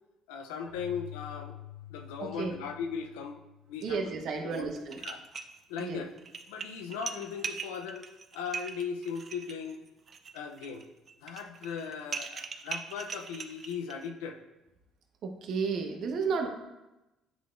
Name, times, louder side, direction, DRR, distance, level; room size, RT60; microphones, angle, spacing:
voice 1, 0.3-1.5 1.9-3.4 3.7-4.0 4.4-4.7 5.0-5.2 5.7-6.1 6.5-8.1 8.3-9.9 10.3-10.8 11.2-14.4, left 6 dB, 90° left, 6 dB, 0.5 m, -38 dB
Keyboard (musical), 0.7-4.2, left 13 dB, 40° left, 1.4 m, -48 dB
voice 2, 2.2-2.5 3.8-5.0 5.8-6.1 15.2-16.5, right 5 dB, 60° right, 4 dB, 0.9 m, -32 dB
sound 1, 4.5-4.6 4.9-5.8 6.2-14.1, right 5 dB, 45° right, 0.5 m, -40 dB
10.0 x 3.7 x 2.5 m, 0.99 s
supercardioid pair, 80°, 0 cm